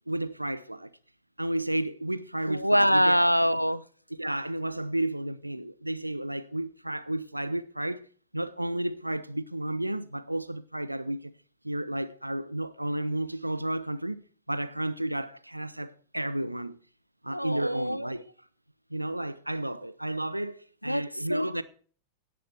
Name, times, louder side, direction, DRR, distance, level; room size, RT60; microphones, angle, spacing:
voice 1, 0.1-0.9 1.4-3.3 4.2-8.0 8.3-11.3 11.6-14.2 14.5-16.8 17.2-18.3 18.9-21.6, right 1 dB, 85° right, 0.7 m, -32 dB
voice 2, 2.5-3.8 17.3-18.1 20.9-21.5, equal, 90° left, 0.5 m, -24 dB
17.0 x 6.8 x 4.4 m
figure-of-eight pair, 90°, 0 cm